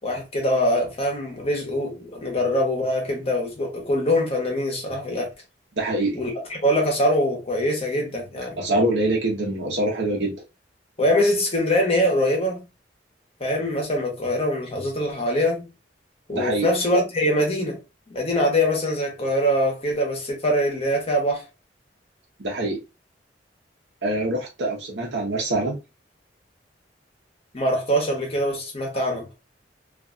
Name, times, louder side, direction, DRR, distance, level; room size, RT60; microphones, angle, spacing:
voice 1, 0.0-5.3 6.1-8.6 11.0-12.6 13.4-15.7 16.3-17.8 18.1-21.4 27.5-29.3, equal, 35° left, 1.0 m, -23 dB
voice 2, 5.8-6.2 8.6-10.3 16.3-16.7 22.4-22.8 24.0-25.8, right 1 dB, 85° right, 0.9 m, -24 dB
2.5 x 2.3 x 2.5 m
head